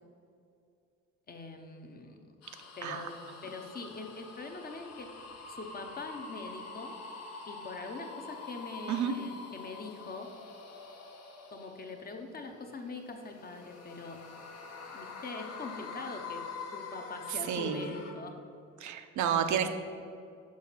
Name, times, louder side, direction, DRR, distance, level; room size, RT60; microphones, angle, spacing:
voice 1, 1.3-2.3 2.8-3.2 3.4-5.1 5.5-6.9 7.5-10.3 11.5-14.2 14.9-16.4 16.7-18.4, left 3 dB, 30° left, 4 dB, 0.8 m, -43 dB
sound 1, 2.4-12.3 12.9-18.1, left 4 dB, 60° left, 1.0 m, -46 dB
voice 2, 17.5-17.9 18.8-19.7, right 8 dB, 75° right, 7 dB, 0.7 m, -30 dB
6.3 x 5.0 x 5.6 m, 2.4 s
cardioid pair, 130°, 29 cm